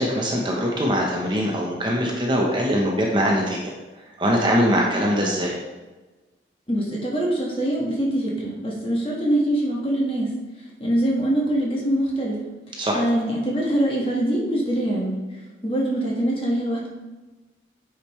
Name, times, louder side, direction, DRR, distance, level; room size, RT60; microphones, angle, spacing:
voice 1, 0.0-3.7 4.2-5.6 12.8-13.0, equal, 25° right, -1 dB, 0.9 m, -22 dB
voice 2, 6.7-10.3 10.8-12.4 12.9-15.2 15.6-16.9, right 1 dB, 30° left, -3 dB, 1.5 m, -23 dB
8.6 x 5.1 x 3.2 m, 1.2 s
head